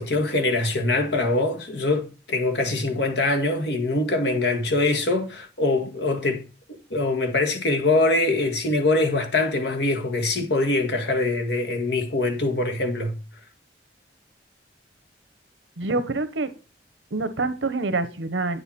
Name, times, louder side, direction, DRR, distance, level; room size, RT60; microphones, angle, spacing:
voice 1, 0.0-6.5 6.9-13.2, left 2 dB, 65° left, 1.6 m, -23 dB
voice 2, 15.8-16.5 17.1-18.6, right 3 dB, 90° right, 1.0 m, -26 dB
9.2 x 6.8 x 4.3 m
head